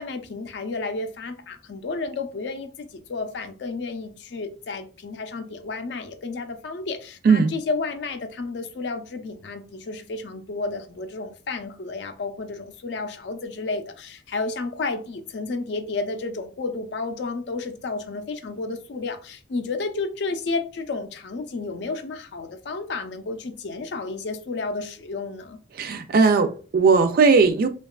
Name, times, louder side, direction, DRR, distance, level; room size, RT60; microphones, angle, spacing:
voice 1, 0.0-25.6, left 3 dB, 70° left, 0.4 m, -31 dB
voice 2, 25.8-27.7, right 4 dB, 55° right, 0.4 m, -18 dB
2.8 x 2.3 x 2.3 m
head